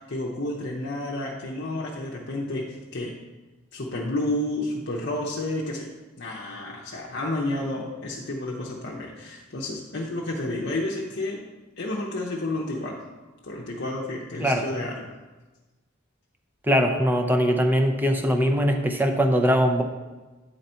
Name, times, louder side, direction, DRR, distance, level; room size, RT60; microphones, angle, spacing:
voice 1, 0.1-3.2 3.7-5.9 6.2-11.4 11.8-13.0 13.4-15.1, left 1 dB, 55° left, -3 dB, 0.7 m, -30 dB
voice 2, 16.7-19.8, equal, 10° right, 4 dB, 0.6 m, -21 dB
9.0 x 4.0 x 4.4 m, 1.2 s
head